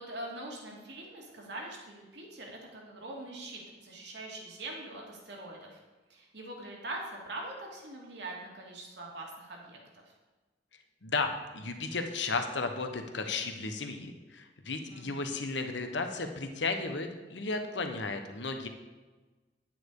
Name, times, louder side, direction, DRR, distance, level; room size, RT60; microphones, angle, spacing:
voice 1, 0.0-5.8 6.1-10.0 14.9-15.3, right 2 dB, 65° right, -1 dB, 2.6 m, -43 dB
voice 2, 11.0-18.7, left 3 dB, 75° left, 6 dB, 1.3 m, -34 dB
10.5 x 9.1 x 4.9 m, 1.2 s
head